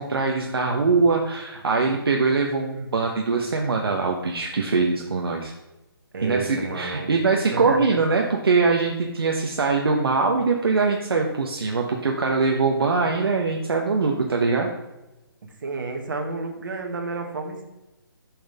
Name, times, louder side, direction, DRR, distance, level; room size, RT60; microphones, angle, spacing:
voice 1, 0.0-5.5 6.2-14.7, right 4 dB, 75° right, 1 dB, 1.2 m, -22 dB
voice 2, 6.1-7.2 7.5-8.0 15.4-17.6, right 3 dB, 55° right, 2 dB, 1.8 m, -31 dB
10.0 x 6.3 x 3.5 m, 1.0 s
hypercardioid pair, 165°, 13 cm